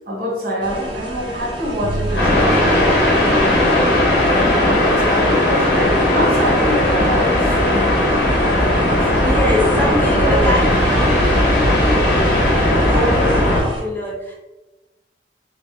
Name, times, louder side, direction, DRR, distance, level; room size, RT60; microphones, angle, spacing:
voice 1, 0.1-3.7 4.4-7.9 8.6-9.4 9.8-10.4 12.8-13.4, equal, 55° right, -2 dB, 1.1 m, -26 dB
sound 1, 0.6-13.8, equal, 25° right, 0.9 m, -31 dB
sound 2, 1.8-5.9, right 2 dB, 70° right, 0.4 m, -29 dB
sound 3, 2.2-13.6, left 1 dB, 65° left, 1.2 m, -16 dB
voice 2, 4.3-4.6 9.2-13.1 13.4-14.3, left 1 dB, 10° left, -4 dB, 0.8 m, -25 dB
3.8 x 2.6 x 3.3 m, 1.1 s
head